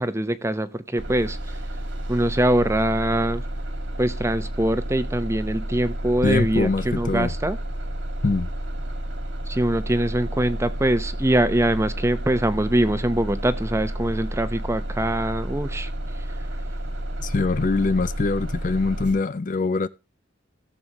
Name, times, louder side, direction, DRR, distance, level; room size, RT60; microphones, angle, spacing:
voice 1, 0.0-1.6 2.1-3.4 4.0-7.6 9.5-15.9 16.2-16.3, right 1 dB, 15° right, 0.7 m, -23 dB
Bus, 1.0-19.1, right 1 dB, 80° right, 2.1 m, -31 dB
voice 2, 6.2-7.3 8.2-8.5 17.2-19.9, left 3 dB, 40° left, 0.4 m, -23 dB
17.5 x 7.0 x 2.9 m
head